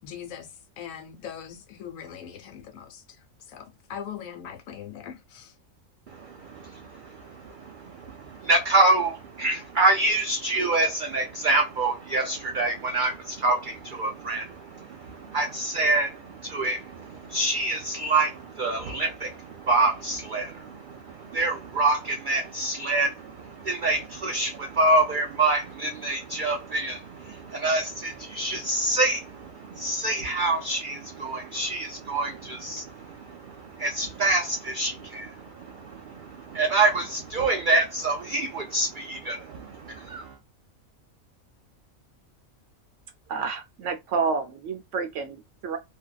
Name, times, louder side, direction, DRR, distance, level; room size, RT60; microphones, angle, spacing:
voice 1, 0.0-3.2 3.5-5.5, left 8 dB, 75° left, 1.1 m, -41 dB
voice 2, 6.1-40.3, right 2 dB, 85° right, 0.4 m, -26 dB
voice 3, 43.3-45.8, right 5 dB, 65° right, 0.9 m, -29 dB
2.6 x 2.2 x 2.2 m
omnidirectional pair, 1.4 m